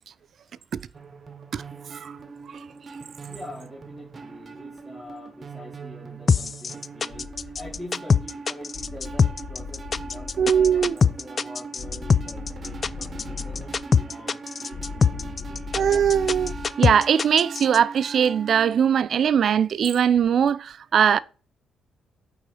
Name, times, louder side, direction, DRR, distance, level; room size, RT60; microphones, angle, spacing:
voice 1, 0.4-1.0 3.3-10.3 10.7-15.6, left 1 dB, 5° left, 2.0 m, -44 dB
sound 1, 0.9-19.0, right 4 dB, 40° right, 1.0 m, -41 dB
sound 2, 6.3-17.8, left 5 dB, 40° left, 0.3 m, -22 dB
sound 3, 7.1-7.8 8.7-10.9 11.8-13.8 14.7-16.7, left 4 dB, 70° left, 1.9 m, -37 dB
voice 2, 10.4-11.0 15.7-21.2, right 8 dB, 60° right, 0.4 m, -20 dB
8.7 x 3.9 x 4.8 m
cardioid pair, 90°, 0 cm